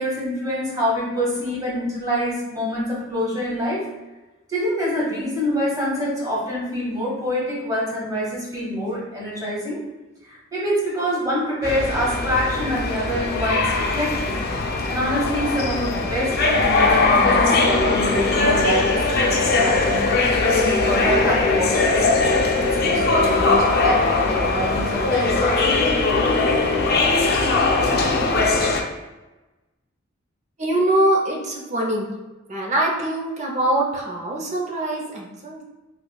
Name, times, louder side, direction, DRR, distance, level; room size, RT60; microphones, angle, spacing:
voice 1, 0.0-3.8 4.5-9.8 10.3-14.4 14.9-20.0 20.5-25.8, equal, 20° right, -5 dB, 1.2 m, -26 dB
sound 1, 11.6-28.8, left 3 dB, 55° left, 0.4 m, -20 dB
voice 2, 30.6-32.1 32.5-35.6, right 1 dB, 35° right, -1 dB, 0.7 m, -23 dB
4.7 x 2.3 x 2.3 m, 1.1 s
head